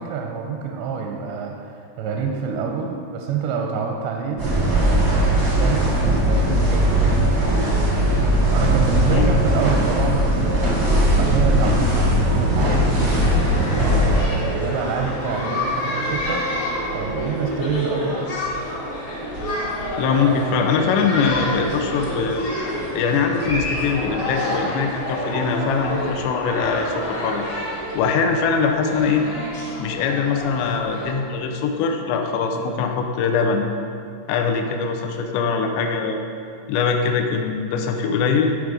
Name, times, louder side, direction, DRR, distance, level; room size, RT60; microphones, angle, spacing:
voice 1, 0.0-7.3 8.5-13.0 13.8-16.4 16.9-18.3, right 5 dB, 85° right, 1 dB, 2.8 m, -27 dB
sound 1, 4.4-14.2, right 1 dB, 65° right, 0.8 m, -19 dB
sound 2, 13.2-31.1, equal, 60° left, 1.2 m, -28 dB
voice 2, 20.0-22.4 22.9-27.5 27.9-29.3 29.8-33.7 34.3-36.2 36.7-38.5, left 5 dB, 85° left, 4 dB, 2.8 m, -22 dB
12.5 x 5.1 x 5.1 m, 2.5 s
omnidirectional pair, 5.1 m